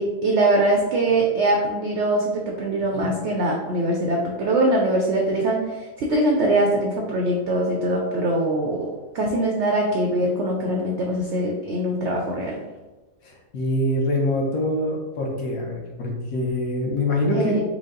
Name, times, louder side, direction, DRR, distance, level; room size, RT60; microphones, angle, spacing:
voice 1, 0.0-8.9 9.1-12.6 17.3-17.6, right 1 dB, 75° right, 0 dB, 0.6 m, -22 dB
voice 2, 13.2-17.6, left 1 dB, 65° left, -1 dB, 1.2 m, -24 dB
5.0 x 2.1 x 3.7 m, 1.2 s
omnidirectional pair, 1.7 m